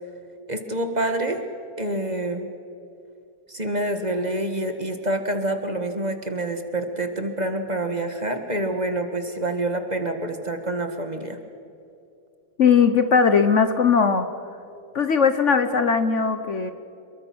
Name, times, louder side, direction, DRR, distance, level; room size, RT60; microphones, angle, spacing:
voice 1, 0.5-1.4 1.8-2.5 3.5-11.4, right 1 dB, 25° right, 6 dB, 1.8 m, -27 dB
voice 2, 12.6-14.3 14.9-16.7, left 6 dB, 50° left, 9 dB, 1.2 m, -19 dB
28.0 x 22.5 x 6.2 m, 2.7 s
omnidirectional pair, 1.7 m